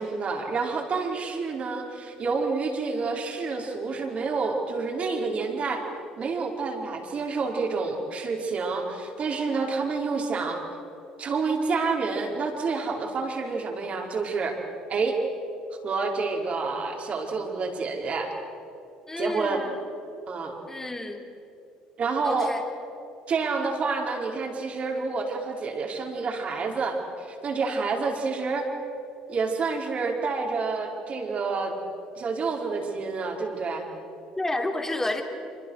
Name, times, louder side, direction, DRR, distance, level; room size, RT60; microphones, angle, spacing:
voice 1, 0.0-5.8 6.2-10.6 11.2-14.6 14.9-15.1 15.8-18.3 19.2-19.6 20.3-20.6 22.0-22.5 23.3-28.7 29.3-31.7 32.2-33.8, right 4 dB, 45° right, 1 dB, 4.8 m, -28 dB
voice 2, 19.1-19.7 20.7-21.2 22.2-22.6 34.4-35.2, left 2 dB, 15° left, 4 dB, 3.4 m, -30 dB
27.0 x 25.5 x 6.6 m, 2.8 s
hypercardioid pair, 60°, 3 cm